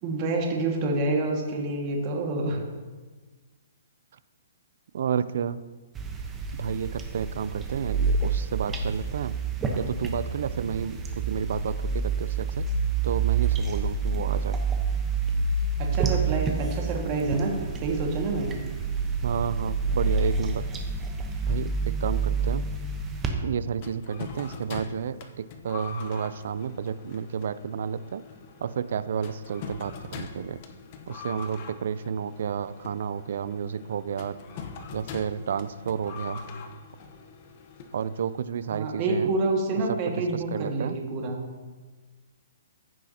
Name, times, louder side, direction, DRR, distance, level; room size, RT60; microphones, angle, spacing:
voice 1, 0.0-2.6 15.8-17.5 17.8-18.6 38.7-41.4, right 2 dB, 35° right, 0 dB, 1.9 m, -27 dB
voice 2, 4.9-5.6 6.5-9.4 9.8-12.6 13.0-14.6 19.2-20.6 21.4-22.6 23.4-28.2 28.6-30.6 31.1-34.4 34.9-36.4 37.9-39.3 39.9-41.0, right 7 dB, 65° right, 15 dB, 0.4 m, -31 dB
sound 1, 5.9-23.3, right 4 dB, 15° right, 1.0 m, -28 dB
sound 2, 23.8-38.5, left 5 dB, 40° left, 1.0 m, -43 dB
15.0 x 6.2 x 2.9 m, 1.4 s
hypercardioid pair, 145°, 0 cm